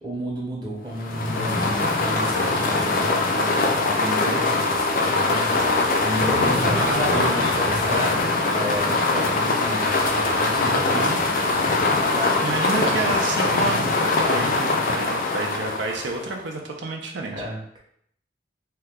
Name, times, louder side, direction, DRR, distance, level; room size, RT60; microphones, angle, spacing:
voice 1, 0.0-11.1 12.0-13.0 17.3-17.8, equal, 25° right, -4 dB, 0.7 m, -32 dB
sound 1, 0.9-16.4, left 3 dB, 50° left, 0.4 m, -22 dB
voice 2, 6.4-7.5 10.6-11.2 12.4-17.4, right 3 dB, 90° right, 1 dB, 0.5 m, -30 dB
2.8 x 2.2 x 3.5 m, 0.66 s
head